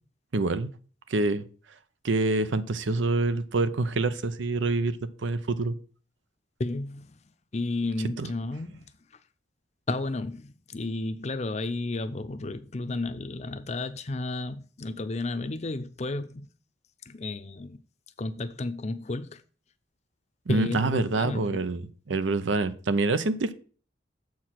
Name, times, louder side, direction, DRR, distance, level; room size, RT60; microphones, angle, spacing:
voice 1, 0.3-0.7 1.1-1.4 2.0-5.8 8.2-8.3 20.5-23.5, right 3 dB, 90° right, 0.6 m, -26 dB
voice 2, 6.6-8.9 9.9-16.5 17.1-17.8 18.2-19.4 20.5-21.6, left 2 dB, 35° left, 0.6 m, -32 dB
7.3 x 4.8 x 5.8 m
head